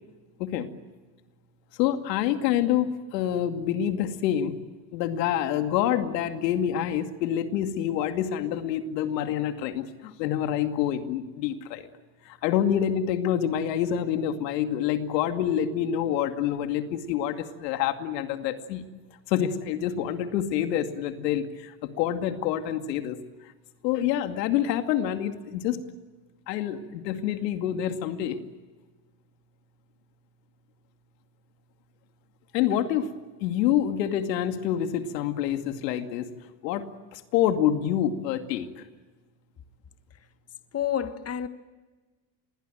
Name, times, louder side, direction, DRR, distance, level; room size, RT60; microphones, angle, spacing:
voice 1, 1.8-4.6 4.9-11.9 12.3-18.8 19.3-23.2 23.4-23.5 23.8-25.8 26.5-28.4 32.5-33.1 33.4-36.3 36.6-38.8, left 10 dB, 90° left, 2.5 m, -27 dB
voice 2, 40.7-41.5, left 9 dB, 30° left, 1.6 m, -28 dB
27.0 x 21.5 x 9.2 m
supercardioid pair, 105°, 48 cm